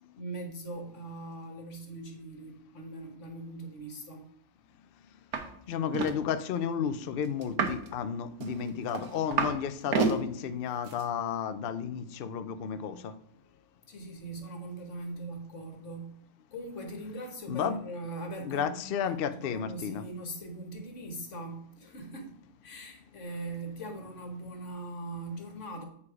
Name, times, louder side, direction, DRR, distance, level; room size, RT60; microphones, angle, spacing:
voice 1, 0.0-4.3 13.9-16.2 16.5-22.4 22.6-25.8, right 2 dB, 50° left, 4 dB, 1.7 m, -41 dB
sound 1, 5.3-5.5 5.7-6.2 7.4-7.9 8.4-9.6 9.8-10.2 10.9-11.0, right 5 dB, 70° right, 1.5 m, -29 dB
voice 2, 5.7-13.1 17.5-17.8 18.4-20.0, left 8 dB, 85° left, 11 dB, 0.5 m, -32 dB
8.5 x 4.8 x 4.8 m, 0.65 s
omnidirectional pair, 1.7 m